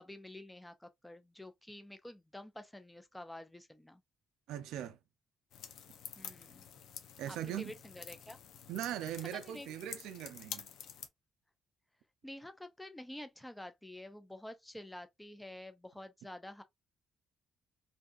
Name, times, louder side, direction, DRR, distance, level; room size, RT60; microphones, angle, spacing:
voice 1, 0.0-4.0 6.2-6.7 7.2-8.4 9.3-9.7 12.2-16.6, left 1 dB, 10° left, 0.5 m, -49 dB
voice 2, 4.5-5.0 7.2-7.7 8.7-10.7, right 11 dB, 90° right, 0.4 m, -40 dB
sound 1, 5.5-11.1, left 8 dB, 80° left, 0.4 m, -49 dB
2.7 x 2.3 x 2.3 m
cardioid pair, 90°, 0 cm